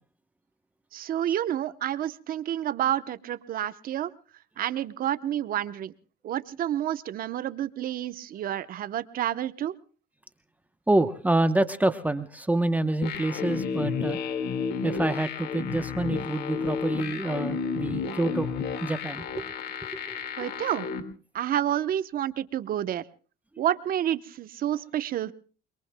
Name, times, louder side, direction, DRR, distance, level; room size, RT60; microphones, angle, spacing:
voice 1, 0.9-4.1 4.6-5.9 6.2-9.7 20.4-20.9 21.3-23.0 23.6-25.3, right 11 dB, 60° right, 13 dB, 0.9 m, -29 dB
voice 2, 10.9-14.2 14.8-18.5 18.8-19.3 20.1-20.2, right 2 dB, 10° right, 9 dB, 0.9 m, -27 dB
sound 1, 13.0-21.0, left 5 dB, 75° left, 2.1 m, -32 dB
28.0 x 22.5 x 2.2 m, 0.39 s
cardioid pair, 110°, 17 cm